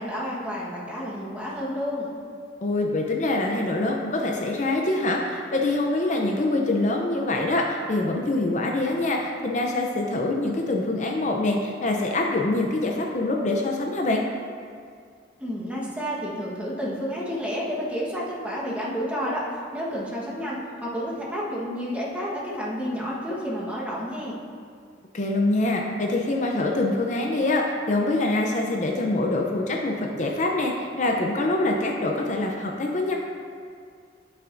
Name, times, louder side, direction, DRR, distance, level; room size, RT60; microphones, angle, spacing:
voice 1, 0.0-2.1 15.4-19.5 19.7-24.4, equal, 10° right, -6 dB, 1.3 m, -30 dB
voice 2, 2.6-14.2 25.1-33.1, left 2 dB, 45° left, 0 dB, 0.6 m, -25 dB
12.0 x 5.7 x 2.6 m, 2.1 s
head